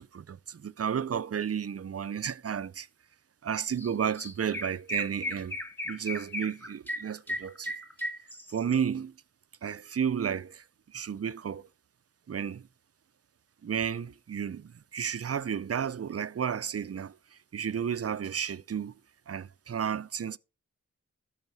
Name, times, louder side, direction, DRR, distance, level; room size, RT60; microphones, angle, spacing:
voice 1, 0.0-2.9 3.4-5.6 5.9-7.7 8.5-9.1 9.6-11.7 12.3-12.7 13.6-17.2 17.5-18.9 19.3-20.4, right 8 dB, 50° right, 0.5 m, -32 dB
Chirp tweet, 3.8-3.9 4.2-8.8, left 1 dB, 5° left, 1.5 m, -36 dB
13.0 x 4.9 x 4.6 m
wide cardioid pair, 55°, 32 cm